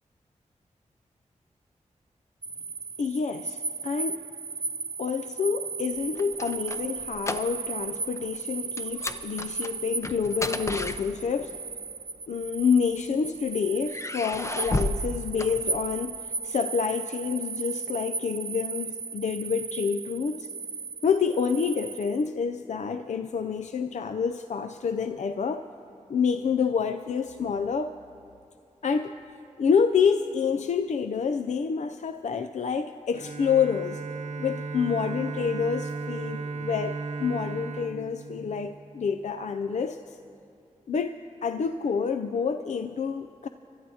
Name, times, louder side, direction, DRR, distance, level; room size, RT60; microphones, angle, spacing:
sound 1, 2.4-22.3, right 4 dB, 45° right, 0.5 m, -36 dB
voice 1, 3.0-4.2 5.0-11.6 12.3-20.5 21.0-25.6 26.1-27.9 28.8-29.1 29.6-34.0 34.4-40.2 40.9-43.5, left 6 dB, 65° left, 8 dB, 0.4 m, -28 dB
sound 2, 6.0-7.9 8.1-8.4 8.8-11.6 12.4-13.3 13.9-16.2, left 2 dB, 20° left, 0.6 m, -33 dB
Bowed string instrument, 33.1-39.1, right 4 dB, 65° right, 0.9 m, -35 dB
25.5 x 12.5 x 2.8 m, 2.6 s
cardioid pair, 55°, 13 cm